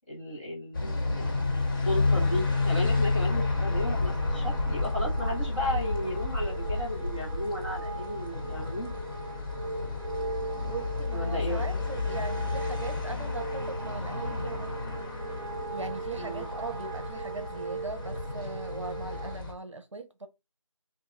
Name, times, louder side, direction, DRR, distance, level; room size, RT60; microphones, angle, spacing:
voice 1, 0.1-8.9 11.1-11.7 16.2-16.5, left 1 dB, 15° left, 1.5 m, -34 dB
sound 1, 0.7-19.5, left 3 dB, 40° left, 1.8 m, -31 dB
sound 2, 2.0-19.4, right 3 dB, 15° right, 2.7 m, -39 dB
voice 2, 10.5-14.7 15.7-20.3, right 3 dB, 60° right, 0.9 m, -40 dB
3.8 x 2.8 x 3.6 m
figure-of-eight pair, 175°, 17 cm